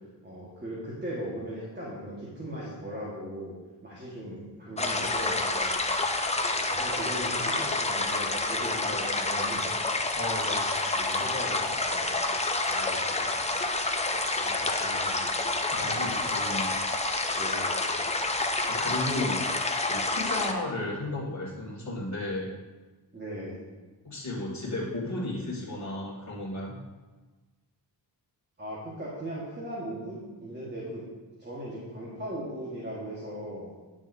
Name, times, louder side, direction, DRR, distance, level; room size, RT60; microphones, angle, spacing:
voice 1, 0.2-3.6 3.8-5.7 6.5-10.1 10.9-12.2 12.7-13.3 14.4-15.4 15.7-15.9 17.3-17.8 20.3-20.5 23.1-23.6 28.6-31.0 31.4-33.7, equal, 25° right, -6 dB, 1.5 m, -39 dB
sound 1, 4.8-20.5, left 2 dB, 15° left, 0.5 m, -28 dB
voice 2, 10.1-10.7 15.7-16.8 18.7-19.5 19.8-22.5 24.0-26.8, left 2 dB, 40° left, -5 dB, 2.2 m, -34 dB
9.9 x 6.8 x 2.7 m, 1.3 s
wide cardioid pair, 150°, 45 cm